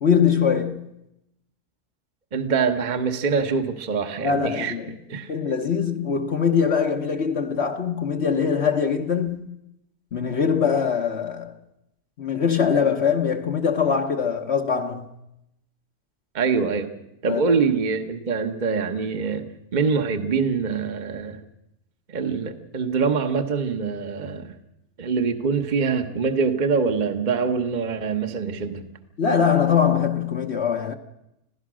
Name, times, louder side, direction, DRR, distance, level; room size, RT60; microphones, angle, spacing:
voice 1, 0.0-0.8 4.2-4.9 5.3-9.5 10.1-11.5 12.2-15.1 17.3-17.4 29.2-30.9, left 6 dB, 50° left, 1.2 m, -22 dB
voice 2, 2.3-4.7 5.1-5.3 16.3-16.9 17.2-21.4 22.1-24.6 25.0-28.8, right 5 dB, 30° right, 1.2 m, -24 dB
26.0 x 16.0 x 6.2 m
omnidirectional pair, 1.6 m